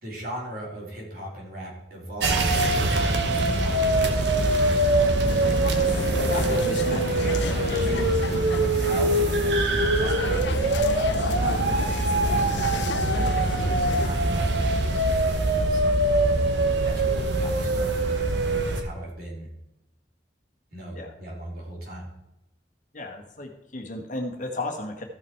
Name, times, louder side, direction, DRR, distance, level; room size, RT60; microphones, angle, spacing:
voice 1, 0.0-5.6 6.1-8.3 8.8-15.8 16.8-19.5 20.7-22.0, right 1 dB, 55° right, -3 dB, 3.7 m, -38 dB
sound 1, 2.2-18.8, right 2 dB, 75° right, 1.2 m, -23 dB
sound 2, 5.3-14.1, left 4 dB, 70° left, 0.5 m, -33 dB
voice 2, 22.9-25.0, left 2 dB, 45° left, 3 dB, 1.4 m, -34 dB
14.5 x 5.8 x 4.6 m, 0.88 s
head